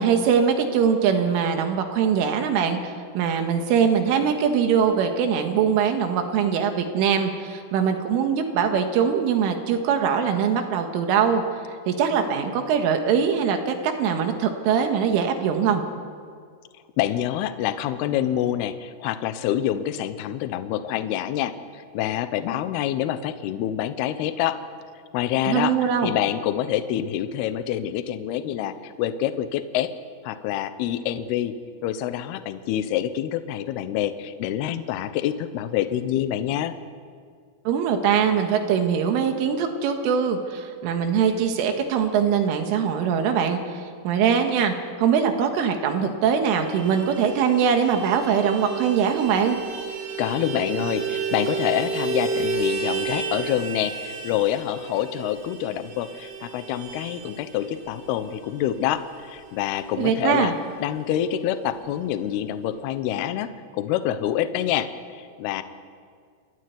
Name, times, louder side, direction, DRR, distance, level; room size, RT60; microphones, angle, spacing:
voice 1, 0.0-11.4 11.9-15.8 25.4-26.1 37.7-49.6 60.0-60.6, right 7 dB, 80° right, 5 dB, 4.1 m, -22 dB
voice 2, 17.0-24.6 25.1-29.9 30.2-31.6 31.8-36.7 50.2-60.5 60.8-65.6, left 11 dB, 75° left, 11 dB, 2.4 m, -26 dB
Vehicle horn car horn honking, 46.6-60.5 60.8-60.9 61.2-61.4 61.7-62.4, right 5 dB, 55° right, 5.8 m, -32 dB
28.5 x 12.5 x 9.6 m, 2.1 s
omnidirectional pair, 5.7 m